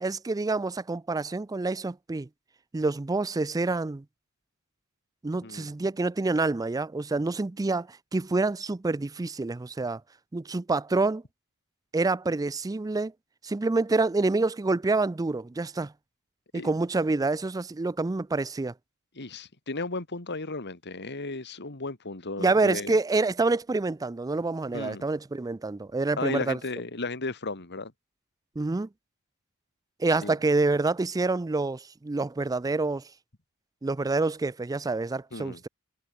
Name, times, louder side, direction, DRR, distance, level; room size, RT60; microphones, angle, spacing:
voice 1, 0.0-2.3 2.7-4.0 5.2-10.0 10.3-11.2 11.9-13.1 13.4-15.9 16.5-18.7 22.4-26.6 28.6-28.9 30.0-33.0 33.8-35.7, right 3 dB, 15° right, 0.4 m, -27 dB
voice 2, 19.2-23.0 24.7-25.1 26.2-27.9 30.2-30.3 35.3-35.6, left 3 dB, 50° left, 2.5 m, -34 dB
head